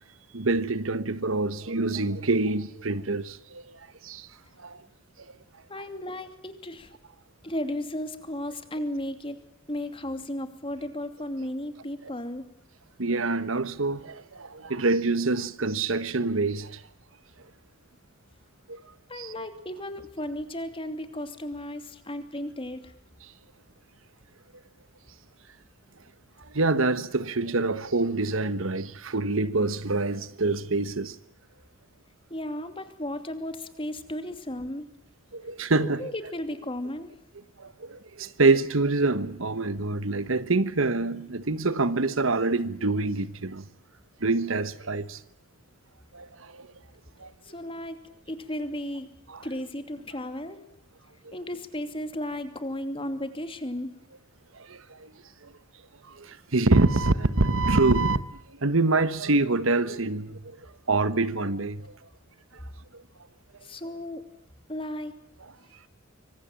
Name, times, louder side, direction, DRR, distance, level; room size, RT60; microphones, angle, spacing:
voice 1, 0.3-4.3 4.6-4.8 13.0-16.8 18.7-18.8 19.1-19.3 26.5-31.2 35.3-36.1 37.6-43.7 44.2-45.2 46.1-46.7 47.2-47.3 49.3-49.4 51.2-51.4 54.6-55.1 56.1-58.2 58.5-60.6 60.9-61.9, right 3 dB, 70° right, 1.3 m, -26 dB
voice 2, 5.7-6.9 7.4-9.4 9.7-12.5 19.1-22.9 32.3-34.8 36.0-37.2 47.4-48.0 48.3-49.1 49.4-50.6 51.3-53.9 63.6-64.3 64.7-65.1, left 1 dB, 25° left, 2.8 m, -34 dB
25.5 x 25.0 x 9.0 m
head